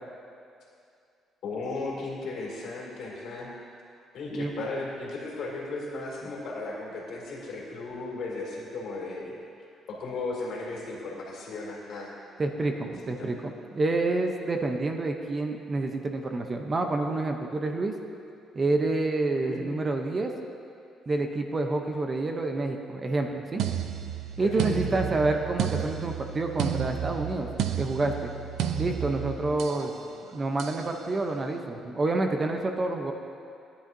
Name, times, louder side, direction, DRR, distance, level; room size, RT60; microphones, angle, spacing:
voice 1, 1.4-3.5 4.1-9.4 9.9-12.1 13.2-13.3 19.4-19.7 24.4-25.1 29.7-30.2, left 3 dB, 65° left, -3 dB, 2.4 m, -36 dB
voice 2, 12.4-17.9 18.5-20.3 21.1-23.7 24.4-27.5 27.8-28.3 28.8-29.9 30.3-33.1, right 2 dB, 30° right, 4 dB, 0.7 m, -28 dB
sound 1, 23.6-29.9 30.6-30.9, right 9 dB, 75° right, 0.5 m, -32 dB
14.5 x 10.0 x 2.7 m, 2.5 s
cardioid pair, 130°, 0 cm